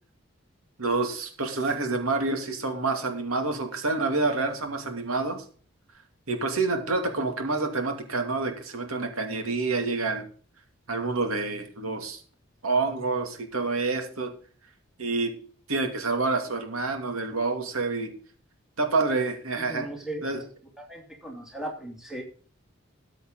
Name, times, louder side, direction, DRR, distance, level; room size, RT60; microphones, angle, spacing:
voice 1, 0.8-5.4 6.3-10.3 10.9-12.2 12.6-14.3 15.0-15.3 15.7-18.1 18.8-19.9 20.2-20.4, right 3 dB, 90° right, 5 dB, 2.6 m, -28 dB
voice 2, 19.7-20.4 20.8-22.2, right 1 dB, ahead, 0 dB, 2.8 m, -37 dB
13.5 x 8.0 x 4.0 m, 0.43 s
head